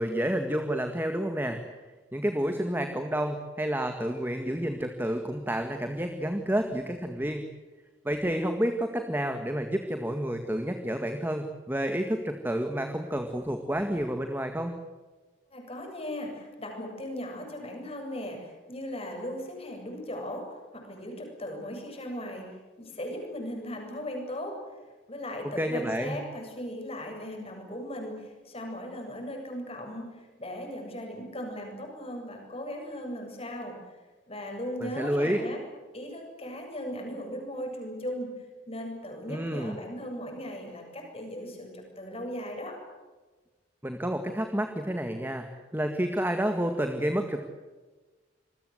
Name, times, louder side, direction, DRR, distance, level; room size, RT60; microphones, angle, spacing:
voice 1, 0.0-1.6 2.1-7.4 8.0-14.8 25.6-26.2 34.8-35.4 39.3-39.8 43.8-45.5 45.7-47.5, right 1 dB, 10° right, 5 dB, 1.9 m, -29 dB
voice 2, 15.5-24.8 25.1-34.0 34.3-35.6 35.9-42.8, equal, 30° left, 2 dB, 7.9 m, -38 dB
27.5 x 22.0 x 8.1 m, 1.3 s
head